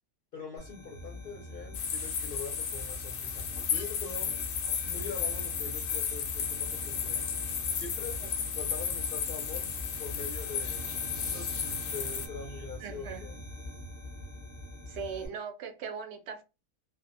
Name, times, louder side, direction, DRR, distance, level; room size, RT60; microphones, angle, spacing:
voice 1, 0.3-4.3 4.9-7.2 7.7-8.2 8.5-9.7 10.0-10.8 11.3-13.3, left 4 dB, 65° left, 0.5 m, -43 dB
sound 1, 0.6-15.3, left 1 dB, 10° right, 0.5 m, -43 dB
sound 2, 1.7-12.3, left 7 dB, 90° left, 1.1 m, -34 dB
sound 3, 10.8-12.6 14.8-14.9, right 1 dB, 25° right, 0.8 m, -54 dB
voice 2, 12.8-13.4 14.9-16.4, right 6 dB, 65° right, 0.7 m, -39 dB
2.6 x 2.2 x 2.5 m
omnidirectional pair, 1.6 m